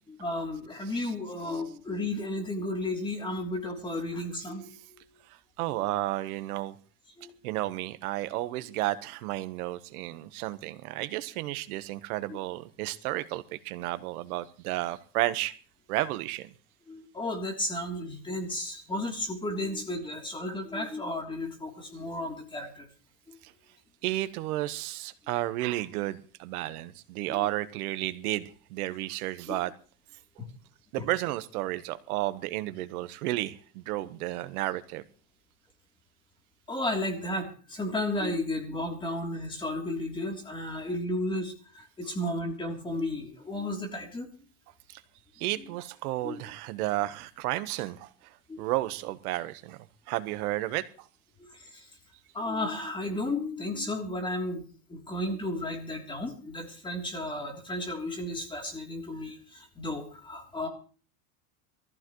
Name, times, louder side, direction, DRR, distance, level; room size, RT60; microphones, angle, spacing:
voice 1, 0.1-4.7 5.7-5.9 7.2-7.3 12.3-12.4 16.9-22.9 23.3-23.4 27.3-27.5 29.5-29.6 36.7-44.3 45.5-45.8 46.2-46.4 48.5-48.6 51.4-51.9 52.3-60.7, left 1 dB, 10° left, 3.2 m, -33 dB
voice 2, 5.6-6.8 7.4-15.5 15.9-16.5 23.4-23.5 24.0-29.7 30.9-35.0 44.9-45.0 45.4-48.1 48.6-49.8 50.1-50.8, right 16 dB, 80° right, 1.4 m, -32 dB
22.5 x 14.5 x 3.2 m
supercardioid pair, 155°, 43 cm